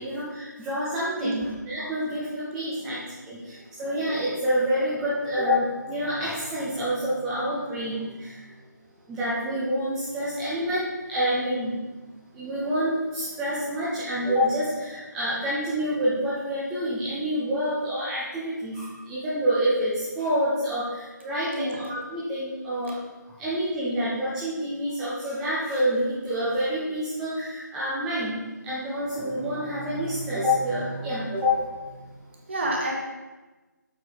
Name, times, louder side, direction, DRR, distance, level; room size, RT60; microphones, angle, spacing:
voice 1, 0.0-8.5 9.1-11.8 12.3-23.0 23.3-32.2, equal, 5° right, -9 dB, 0.5 m, -28 dB
voice 2, 32.5-32.9, right 1 dB, 35° right, -1 dB, 1.4 m, -28 dB
7.5 x 4.5 x 4.9 m, 1.2 s
figure-of-eight pair, 155°, 10 cm